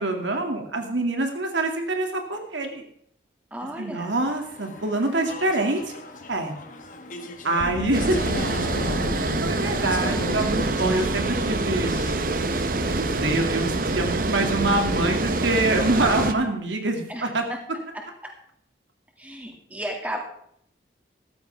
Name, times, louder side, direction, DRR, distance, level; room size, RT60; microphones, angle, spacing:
voice 1, 0.0-2.8 3.8-5.9 6.3-6.5 7.4-8.2 9.2-12.0 12.8-17.4, right 2 dB, 85° right, 3 dB, 2.3 m, -25 dB
voice 2, 3.5-4.1 17.1-17.3 17.9-18.0 19.2-20.2, equal, 10° right, 1 dB, 2.2 m, -33 dB
Speech / Chatter, 4.0-13.4, left 2 dB, 45° left, 1.4 m, -40 dB
Gong, 7.6-12.8, left 1 dB, 80° left, 1.0 m, -34 dB
Water, 7.9-16.3, right 2 dB, 50° right, 0.8 m, -26 dB
14.0 x 14.0 x 3.5 m, 0.67 s
head